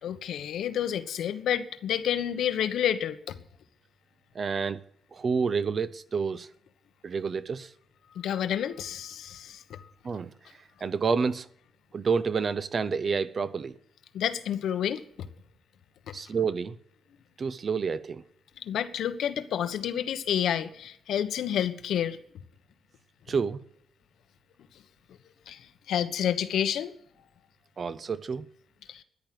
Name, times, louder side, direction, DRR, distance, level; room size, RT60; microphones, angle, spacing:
voice 1, 0.0-3.4 8.1-9.8 14.1-15.3 16.1-16.2 18.6-22.2 25.5-26.9 28.9-29.0, left 9 dB, 75° left, 1.2 m, -29 dB
voice 2, 4.3-4.8 5.1-6.5 7.0-7.7 10.0-10.3 10.8-11.5 11.9-13.7 16.1-16.7 17.4-18.2 23.3-23.6 27.8-28.5, right 5 dB, 30° right, 0.6 m, -29 dB
13.5 x 10.5 x 7.7 m
wide cardioid pair, 175°, 0 cm